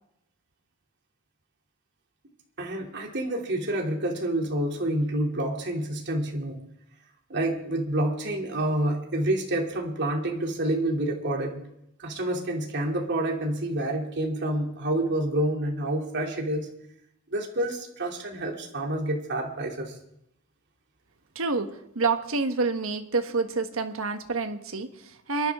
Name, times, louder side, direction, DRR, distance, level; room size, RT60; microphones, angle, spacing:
voice 1, 2.6-6.6 7.3-11.6 12.0-16.7 17.3-19.9, right 1 dB, 55° right, 0 dB, 2.9 m, -28 dB
voice 2, 21.3-25.5, right 4 dB, 70° right, 7 dB, 1.4 m, -28 dB
28.5 x 11.5 x 3.7 m, 0.78 s
head